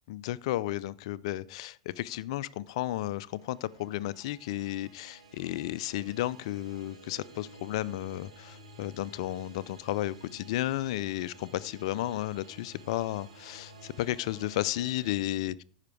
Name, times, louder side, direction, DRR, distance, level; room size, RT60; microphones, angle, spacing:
voice 1, 0.1-15.6, left 15 dB, 60° left, 18 dB, 0.5 m, -33 dB
sound 1, 2.8-15.1, right 2 dB, 80° right, 2.1 m, -53 dB
14.5 x 5.8 x 4.8 m, 0.42 s
figure-of-eight pair, 85°, 3 cm